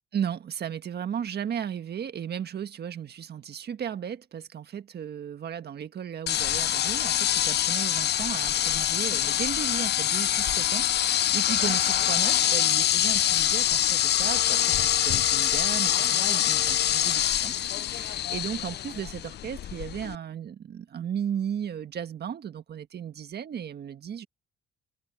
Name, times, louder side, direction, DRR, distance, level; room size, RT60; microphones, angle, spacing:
voice 1, 0.1-17.5 17.9-24.3, right 8 dB, 55° right, 1.6 m, -35 dB
sound 1, 6.3-20.1, left 11 dB, 55° left, 0.5 m, -25 dB
open air
cardioid pair, 90°, 20 cm